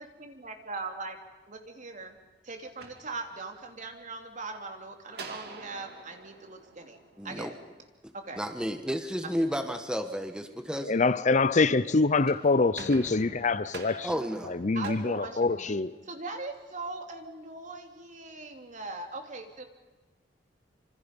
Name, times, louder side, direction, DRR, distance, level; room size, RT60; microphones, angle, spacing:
voice 1, 0.2-1.2 1.5-2.2 2.4-7.0 7.2-7.6 8.1-8.4 9.2-9.4 14.7-19.6, right 3 dB, 45° right, 3.0 m, -40 dB
sound 1, 2.8-3.8 5.1-7.6 12.0-16.1, right 3 dB, 60° right, 2.7 m, -47 dB
voice 2, 7.2-7.5 8.4-10.9 14.0-14.6, equal, 5° right, 1.4 m, -32 dB
voice 3, 10.8-14.1 14.5-15.9, left 3 dB, 45° left, 0.7 m, -25 dB
26.5 x 26.5 x 5.4 m
head